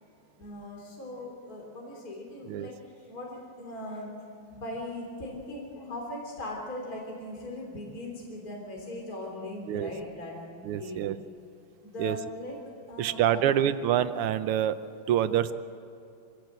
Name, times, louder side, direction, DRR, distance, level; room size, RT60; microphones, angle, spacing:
voice 1, 0.4-4.1 4.5-11.1 11.8-12.6 12.9-13.9, left 1 dB, 40° left, -1 dB, 4.0 m, -40 dB
voice 2, 10.7-11.2 12.0-12.2 13.0-14.8 15.1-15.5, right 10 dB, 90° right, 11 dB, 1.7 m, -26 dB
24.5 x 16.5 x 8.0 m, 2.7 s
omnidirectional pair, 2.4 m